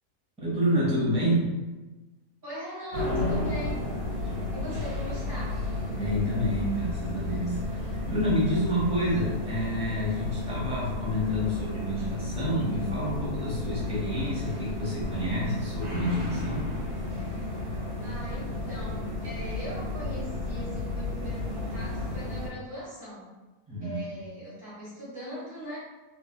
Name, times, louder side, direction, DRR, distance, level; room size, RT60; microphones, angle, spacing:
voice 1, 0.4-1.5 4.3-4.4 5.9-16.6 23.7-24.0, equal, 5° right, -8 dB, 0.6 m, -29 dB
voice 2, 2.4-3.8 4.5-5.6 18.0-23.3 23.8-25.8, equal, 35° right, -10 dB, 1.6 m, -40 dB
sound 1, 2.9-22.5, left 2 dB, 65° right, 1.4 m, -32 dB
3.1 x 2.8 x 2.2 m, 1.2 s
omnidirectional pair, 1.7 m